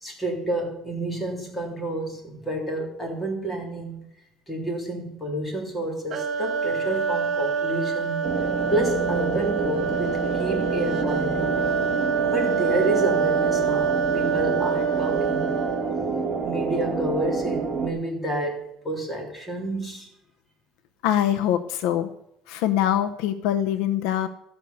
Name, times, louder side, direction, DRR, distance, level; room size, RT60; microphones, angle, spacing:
voice 1, 0.0-4.0 4.5-8.2 8.7-11.8 12.3-15.5 16.4-20.1, right 1 dB, 10° left, 1 dB, 3.2 m, -29 dB
sound 1, 6.1-16.0, right 6 dB, 40° right, 1.5 m, -26 dB
sound 2, 8.2-17.9, right 4 dB, 20° right, 2.2 m, -28 dB
voice 2, 21.0-22.1 22.5-24.3, left 11 dB, 80° left, 10 dB, 0.8 m, -23 dB
13.0 x 6.4 x 7.1 m, 0.80 s
cardioid pair, 140°, 0 cm